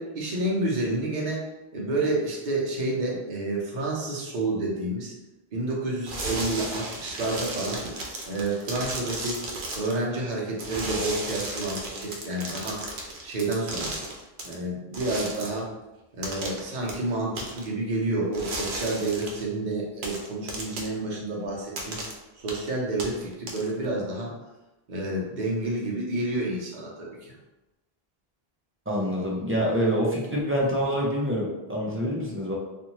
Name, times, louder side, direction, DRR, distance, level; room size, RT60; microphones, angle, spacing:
voice 1, 0.0-1.4 1.7-5.1 5.5-7.8 8.3-9.4 9.7-12.8 13.2-14.0 14.4-15.7 16.1-22.0 22.4-24.3 24.9-27.4, right 2 dB, 50° right, -3 dB, 0.8 m, -29 dB
sound 1, 6.1-10.0 10.6-14.5 14.9-15.6 16.2-16.6 16.9-17.0 17.4-17.7 18.3-19.4 20.0-21.0 21.8-22.1 22.5-22.7 23.0-23.9, right 2 dB, 85° right, 0.9 m, -34 dB
voice 2, 28.9-32.5, equal, 20° right, -4 dB, 0.3 m, -26 dB
2.6 x 2.5 x 2.9 m, 1.0 s
omnidirectional pair, 1.0 m